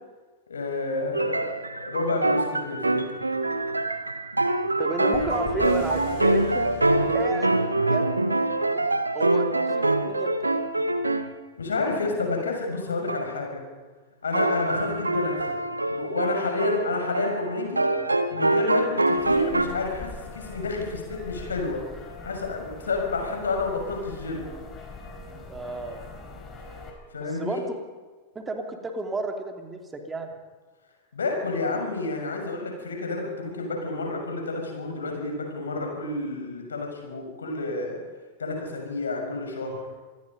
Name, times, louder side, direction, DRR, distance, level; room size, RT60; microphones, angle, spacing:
voice 1, 0.5-3.1 11.6-13.6 14.2-15.6 15.9-17.9 18.3-21.9 22.2-24.4 27.1-27.6 31.1-38.0 38.4-39.8, left 3 dB, 70° left, 2 dB, 6.3 m, -30 dB
sound 1, 1.1-11.3 13.1-13.3 14.3-19.7, right 2 dB, 85° right, 1.3 m, -25 dB
voice 2, 4.8-6.7 7.1-7.5 7.8-8.2 8.7-8.9 9.1-10.5 25.5-26.0 27.4-27.6 28.3-30.3, right 2 dB, 15° right, 3 dB, 3.3 m, -32 dB
sound 2, 5.1-7.9, left 5 dB, 50° left, 3.2 m, -39 dB
sound 3, 19.2-26.9, left 3 dB, 25° left, 4.8 m, -42 dB
26.5 x 20.0 x 5.4 m, 1.4 s
figure-of-eight pair, 90°, 0 cm